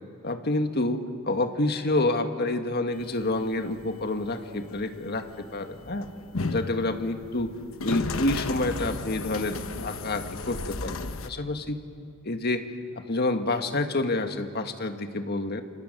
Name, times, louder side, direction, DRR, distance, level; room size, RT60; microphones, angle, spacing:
voice 1, 0.2-6.1 6.5-7.5 7.8-11.8 12.2-12.6 13.0-15.6, left 2 dB, 50° left, 7 dB, 1.6 m, -28 dB
sound 1, 2.9-11.3, left 3 dB, 80° left, 1.1 m, -35 dB
28.5 x 27.5 x 6.6 m, 2.4 s
head